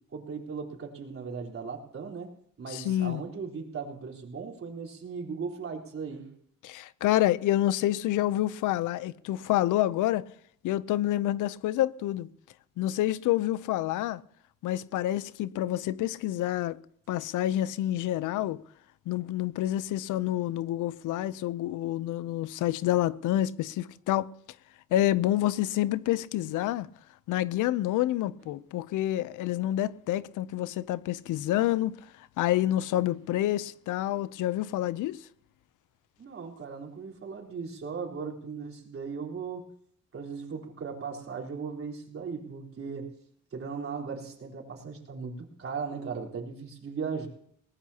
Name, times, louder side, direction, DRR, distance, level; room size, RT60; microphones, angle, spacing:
voice 1, 0.1-2.3 2.6-6.3 36.2-39.7 40.1-43.1 43.5-47.3, right 5 dB, 45° right, 4.0 m, -37 dB
voice 2, 2.7-3.2 6.6-10.3 10.6-12.3 12.8-14.2 14.6-16.8 17.1-18.6 19.1-24.3 24.9-26.9 27.3-35.3, left 14 dB, 85° left, 0.6 m, -28 dB
20.5 x 19.0 x 2.9 m
cardioid pair, 90°, 30 cm